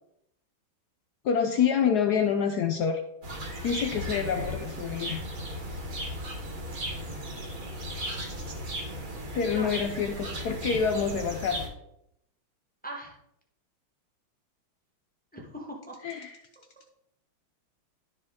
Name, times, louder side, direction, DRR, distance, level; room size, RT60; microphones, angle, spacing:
voice 1, 1.2-3.0 3.6-5.3 9.3-11.7 16.0-16.4, left 7 dB, 80° left, 6 dB, 0.9 m, -27 dB
sound 1, 3.2-11.7, equal, 45° right, 1.6 m, -36 dB
voice 2, 12.8-13.2 15.3-16.0, right 1 dB, 10° left, -1 dB, 0.6 m, -40 dB
12.0 x 4.5 x 3.6 m, 0.80 s
omnidirectional pair, 2.3 m